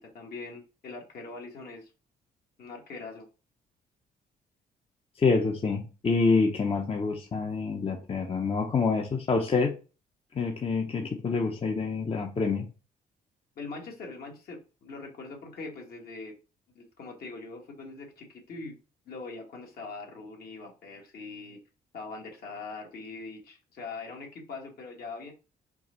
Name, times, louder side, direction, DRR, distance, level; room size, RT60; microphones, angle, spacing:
voice 1, 0.0-1.9 2.6-3.3 13.5-16.4 16.7-18.7 19.0-21.6 21.9-25.3, left 3 dB, 65° left, 1.8 m, -42 dB
voice 2, 5.2-9.7 10.3-12.7, left 4 dB, 35° left, 0.8 m, -27 dB
4.6 x 2.6 x 4.4 m
cardioid pair, 75°, 17 cm